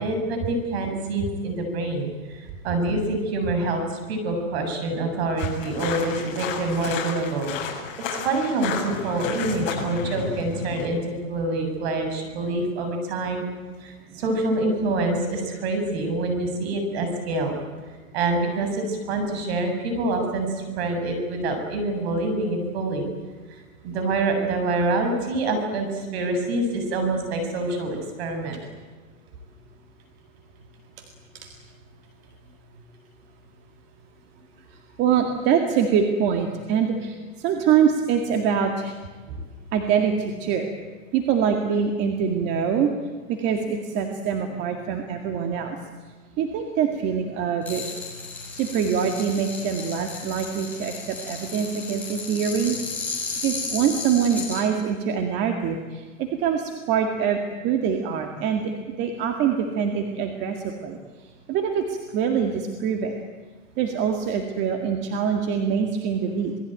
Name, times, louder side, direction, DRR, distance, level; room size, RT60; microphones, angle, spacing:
voice 1, 0.0-7.5 8.0-11.0 11.3-13.4 13.8-17.6 18.1-23.1 23.5-23.6 23.8-28.6 39.3-39.4, right 2 dB, 50° right, 5 dB, 7.9 m, -26 dB
sound 1, 5.4-10.9, left 6 dB, 40° left, 7.6 m, -32 dB
voice 2, 35.0-39.0 39.7-40.7 41.1-42.9 43.3-45.8 46.4-47.8 48.5-52.8 53.4-61.0 61.5-63.1 63.8-66.5, right 7 dB, 25° right, 4 dB, 2.0 m, -24 dB
sound 2, 47.6-54.6, left 4 dB, 5° left, 6.4 m, -34 dB
27.5 x 20.0 x 9.2 m, 1.4 s
supercardioid pair, 165°, 40 cm